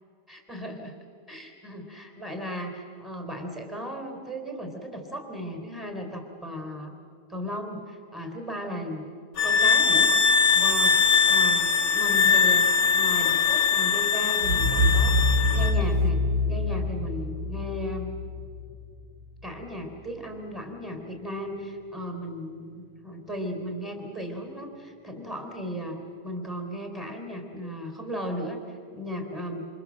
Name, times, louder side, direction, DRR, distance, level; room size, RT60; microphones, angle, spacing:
voice 1, 0.3-0.9 1.3-6.9 7.3-9.1 9.4-10.3 10.5-11.0 11.2-12.7 12.9-16.2 16.5-18.1 19.4-26.0 26.2-29.7, equal, ahead, 3 dB, 3.7 m, -36 dB
sound 1, 9.4-15.8, left 6 dB, 45° left, 1.8 m, -21 dB
sound 2, 14.4-19.3, left 1 dB, 40° right, 4.4 m, -25 dB
27.5 x 27.0 x 7.6 m, 2.2 s
omnidirectional pair, 2.3 m